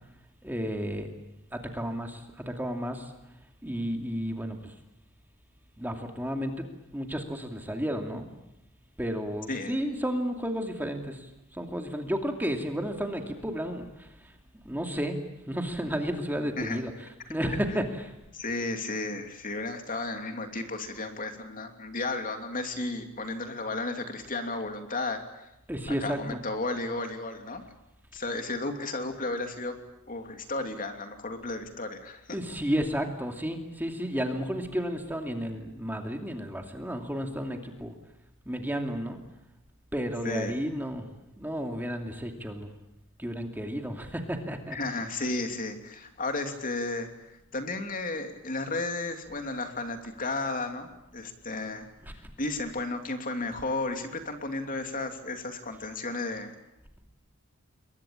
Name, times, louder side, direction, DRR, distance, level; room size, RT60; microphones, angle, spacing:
voice 1, 0.4-1.1 1.5-3.1 3.6-4.7 5.8-6.6 6.9-8.3 9.0-14.4 14.6-15.2 15.5-18.1 25.7-26.4 32.3-37.9 38.5-39.2 39.9-41.1 41.4-42.7 43.2-45.0 52.0-52.1, equal, 10° right, 4 dB, 2.6 m, -32 dB
voice 2, 9.5-9.8 16.6-16.8 18.3-25.5 25.9-27.6 28.1-29.7 30.1-32.4 40.2-40.6 44.7-51.9 52.4-56.5, left 2 dB, 40° left, 5 dB, 2.9 m, -33 dB
28.0 x 22.5 x 8.8 m, 0.90 s
head